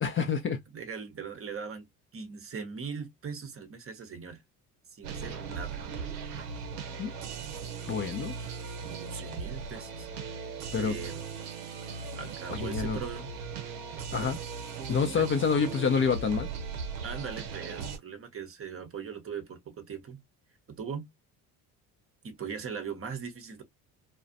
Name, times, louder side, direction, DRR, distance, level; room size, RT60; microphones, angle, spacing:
voice 1, 0.0-0.6 7.0-7.1 7.9-8.3 10.7-11.0 12.5-13.0 14.1-14.4 14.9-16.5, left 6 dB, 30° left, 0.5 m, -27 dB
voice 2, 0.7-4.4 4.9-5.9 8.9-10.1 10.8-11.2 12.2-13.3 14.1-14.3 15.2-15.3 17.0-20.2 20.8-21.1 22.2-23.6, right 6 dB, 30° right, 0.7 m, -40 dB
sound 1, 5.0-18.0, right 5 dB, 80° right, 0.7 m, -38 dB
2.4 x 2.1 x 2.5 m
hypercardioid pair, 60°, 44 cm